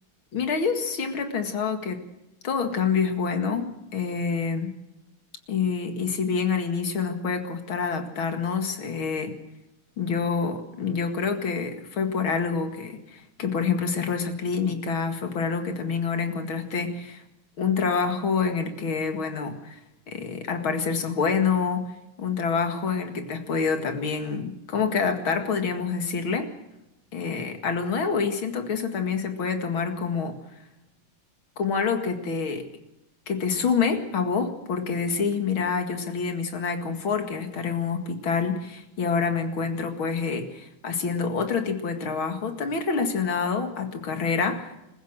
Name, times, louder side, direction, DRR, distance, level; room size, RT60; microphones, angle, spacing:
voice 1, 0.3-2.0 2.4-4.7 5.5-9.3 10.0-17.2 17.6-19.8 20.1-21.9 22.2-26.5 27.1-30.4 31.6-32.7 33.3-44.7, left 5 dB, 85° left, 6 dB, 2.9 m, -27 dB
27.5 x 15.0 x 6.5 m, 0.93 s
omnidirectional pair, 2.2 m